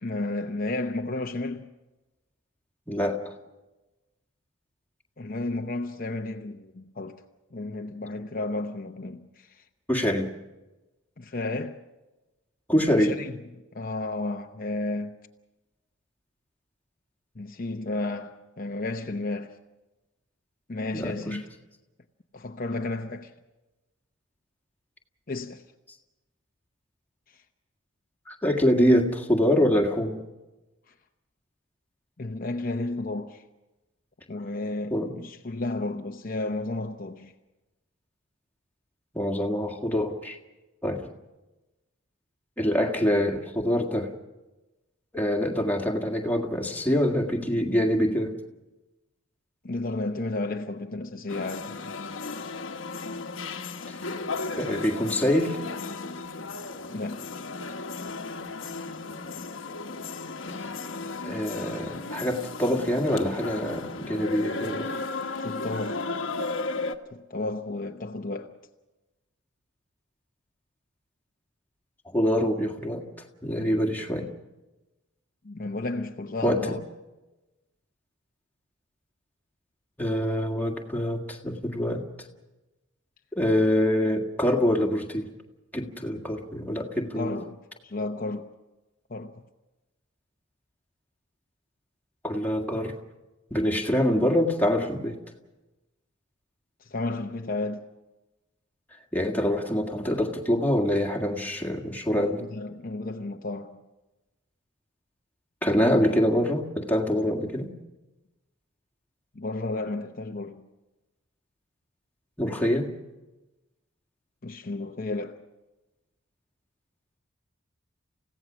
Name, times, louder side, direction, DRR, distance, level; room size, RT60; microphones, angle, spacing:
voice 1, 0.0-1.7 5.2-7.2 7.5-9.7 11.2-11.8 13.0-15.2 17.4-19.6 20.7-21.4 22.3-23.3 25.3-25.6 27.3-27.4 30.9-31.0 32.2-33.4 34.3-37.3 49.6-51.9 56.9-57.3 65.4-66.0 67.1-68.6 75.4-76.8 87.1-88.5 89.1-89.4 96.8-97.9 102.1-103.8 109.3-110.7 114.4-115.4, left 2 dB, 40° left, 0.8 m, -33 dB
voice 2, 2.9-3.2 9.9-10.3 12.7-13.2 20.9-21.4 28.3-30.2 34.9-35.1 39.1-40.4 40.8-41.1 42.6-44.1 45.1-48.3 53.9-54.0 54.6-55.6 61.2-64.9 72.1-73.0 73.4-74.3 76.4-76.8 80.0-82.1 83.4-85.3 85.7-87.4 92.2-92.9 93.5-95.2 99.1-102.4 105.6-107.7 112.4-112.9, equal, 10° left, 1.8 m, -25 dB
sound 1, 51.3-67.0, left 3 dB, 65° left, 1.2 m, -35 dB
29.0 x 16.5 x 6.2 m
head